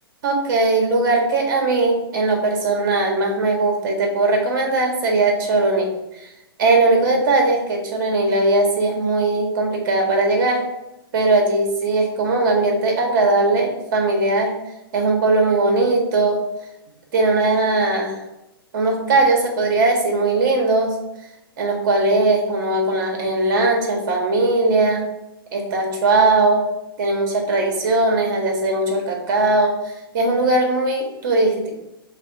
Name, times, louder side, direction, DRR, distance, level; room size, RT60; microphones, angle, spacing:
voice 1, 0.2-5.9 6.6-10.6 11.1-14.5 14.9-16.4 17.1-18.2 18.7-20.9 21.6-25.0 25.5-26.6 27.0-29.7 30.1-31.7, right 2 dB, 55° right, 1 dB, 1.4 m, -19 dB
6.6 x 2.8 x 2.7 m, 0.92 s
hypercardioid pair, 120°, 13 cm